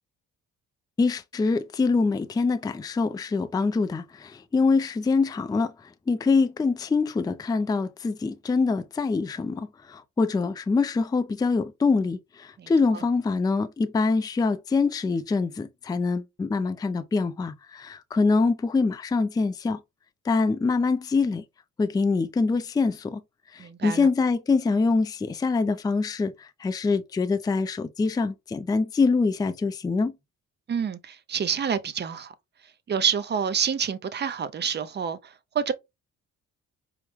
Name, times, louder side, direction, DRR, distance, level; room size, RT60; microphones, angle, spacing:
voice 1, 1.0-19.8 20.2-21.4 21.8-23.2 23.5-30.1, left 4 dB, 15° left, 0.4 m, -24 dB
voice 2, 23.6-24.1 30.7-32.3 32.9-35.7, right 7 dB, 35° right, 0.6 m, -28 dB
4.6 x 2.0 x 3.2 m
cardioid pair, 90°, 30 cm